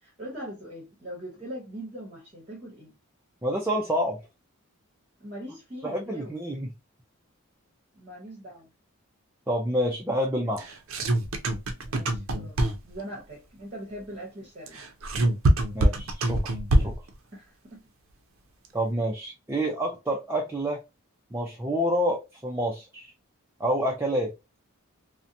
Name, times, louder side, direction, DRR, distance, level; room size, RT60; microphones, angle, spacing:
voice 1, 0.0-2.9 5.2-6.4 7.9-8.7 11.8-12.6 12.8-14.8 16.8-16.9 17.3-17.8, right 1 dB, 30° right, 0.8 m, -41 dB
voice 2, 3.4-4.2 5.8-6.7 9.5-10.8 15.7-16.6 16.8-16.9 18.7-20.8 21.3-23.1 23.6-24.3, equal, 10° right, 0.3 m, -28 dB
sound 1, 10.6-13.0 14.7-17.1, right 1 dB, 65° right, 0.5 m, -24 dB
2.7 x 2.1 x 2.5 m
head